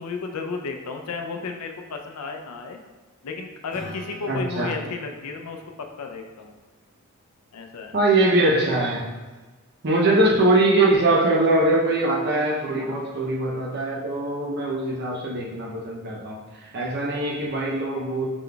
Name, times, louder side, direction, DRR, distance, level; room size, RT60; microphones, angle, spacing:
voice 1, 0.0-2.8 3.2-6.5 7.5-8.0 12.6-13.0, left 4 dB, 90° left, 4 dB, 0.5 m, -33 dB
Acoustic guitar / Strum, 3.7-8.5, left 1 dB, 35° left, 1.2 m, -46 dB
voice 2, 4.3-4.8 7.9-9.1 9.8-16.4 16.7-18.3, right 2 dB, 45° right, -2 dB, 0.6 m, -22 dB
5.0 x 3.8 x 2.3 m, 1.3 s
head